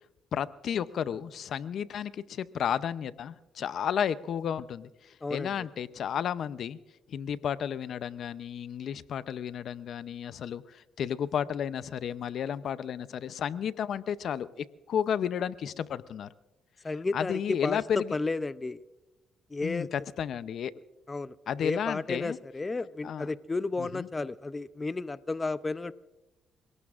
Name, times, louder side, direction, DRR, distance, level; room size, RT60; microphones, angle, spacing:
voice 1, 0.3-4.9 5.3-6.8 7.1-16.3 17.1-18.1 19.6-20.7 21.5-22.4 23.0-23.3 23.8-24.1, left 8 dB, 65° left, 15 dB, 0.6 m, -32 dB
voice 2, 5.2-5.7 16.8-17.8 18.1-18.8 19.5-19.9 21.1-25.9, left 3 dB, 25° left, 14 dB, 0.5 m, -33 dB
29.5 x 18.0 x 2.5 m, 1.0 s
cardioid pair, 90°, 0 cm